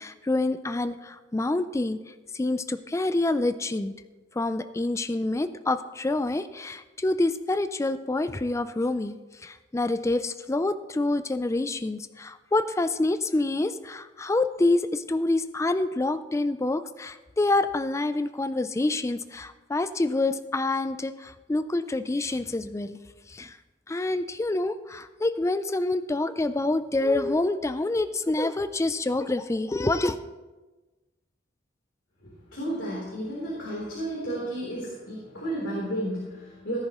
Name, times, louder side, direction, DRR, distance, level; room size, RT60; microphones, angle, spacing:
voice 1, 0.0-2.0 2.3-3.9 4.4-9.2 9.4-23.0 23.3-23.6 23.9-30.2, left 2 dB, 15° left, 12 dB, 0.4 m, -27 dB
voice 2, 32.2-36.8, right 1 dB, 80° left, -6 dB, 3.5 m, -32 dB
17.5 x 10.5 x 3.0 m, 1.2 s
head